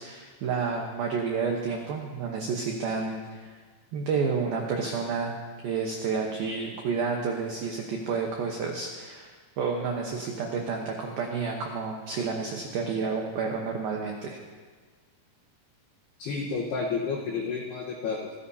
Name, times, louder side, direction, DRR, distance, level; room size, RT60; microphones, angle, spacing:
voice 1, 0.0-3.5 3.9-5.3 5.6-14.4, right 5 dB, 80° right, 0 dB, 2.1 m, -30 dB
voice 2, 16.2-18.3, left 5 dB, 70° left, -2 dB, 2.6 m, -31 dB
24.0 x 15.0 x 2.8 m, 1.5 s
omnidirectional pair, 5.9 m